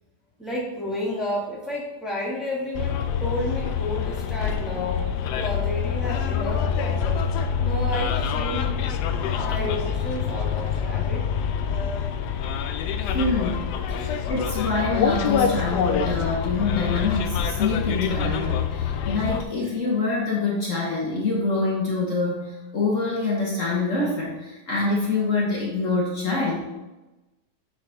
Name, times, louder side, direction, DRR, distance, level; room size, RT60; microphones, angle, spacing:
voice 1, 0.4-5.0 5.3-7.3 7.6-8.7 9.4-11.2, left 1 dB, ahead, -5 dB, 1.6 m, -31 dB
Bus, 2.7-19.4, left 7 dB, 75° left, 1.1 m, -26 dB
voice 2, 13.0-26.6, left 3 dB, 50° left, -3 dB, 1.4 m, -25 dB
8.3 x 4.0 x 4.0 m, 1.0 s
omnidirectional pair, 1.8 m